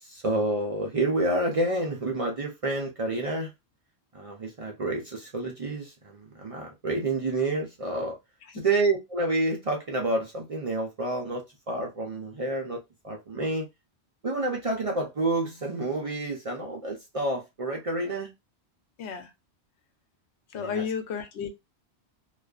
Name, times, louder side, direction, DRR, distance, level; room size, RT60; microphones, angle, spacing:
voice 1, 0.0-3.5 4.1-8.2 8.5-13.7 14.2-18.3 20.5-20.8, right 2 dB, 45° right, 0.4 m, -29 dB
voice 2, 20.5-21.5, left 7 dB, 80° left, 0.9 m, -32 dB
2.4 x 2.3 x 2.2 m
omnidirectional pair, 1.1 m